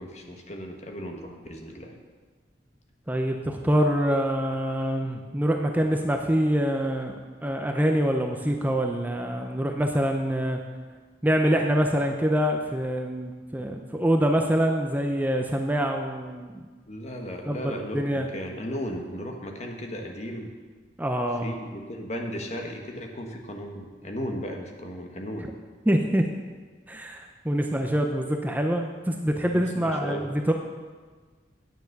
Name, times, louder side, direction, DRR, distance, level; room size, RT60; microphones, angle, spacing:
voice 1, 0.0-1.9 16.9-20.5 21.4-25.5 29.4-30.3, equal, 40° left, 3 dB, 1.3 m, -36 dB
voice 2, 3.1-7.1 7.4-10.6 11.2-16.6 17.5-18.3 21.0-21.5 25.9-26.2 26.9-30.5, equal, 10° right, 3 dB, 0.6 m, -25 dB
9.4 x 7.1 x 6.5 m, 1.4 s
head